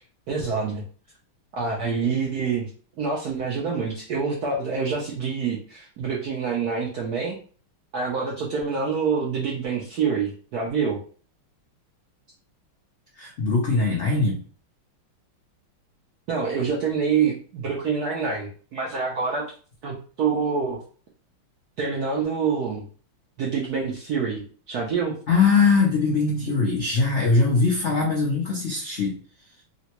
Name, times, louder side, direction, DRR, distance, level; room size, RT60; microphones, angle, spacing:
voice 1, 0.3-0.8 1.5-2.7 3.0-7.4 7.9-11.0 16.3-19.5 19.8-20.8 21.8-22.8 23.4-25.1, right 5 dB, 75° right, -2 dB, 0.9 m, -26 dB
voice 2, 13.1-14.4 25.3-29.2, left 4 dB, 80° left, -3 dB, 0.6 m, -21 dB
3.8 x 2.2 x 2.9 m, 0.41 s
omnidirectional pair, 2.4 m